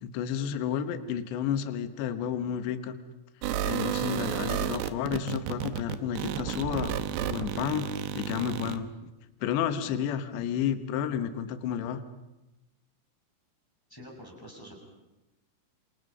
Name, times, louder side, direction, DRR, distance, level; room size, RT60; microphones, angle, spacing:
voice 1, 0.0-3.0 3.6-9.1 9.4-12.0, left 9 dB, 70° left, 8 dB, 3.3 m, -31 dB
sound 1, 3.4-8.8, right 10 dB, 75° right, 3.0 m, -31 dB
voice 2, 13.9-14.7, equal, 5° left, 0 dB, 5.9 m, -46 dB
28.5 x 27.5 x 5.6 m, 1.0 s
omnidirectional pair, 5.6 m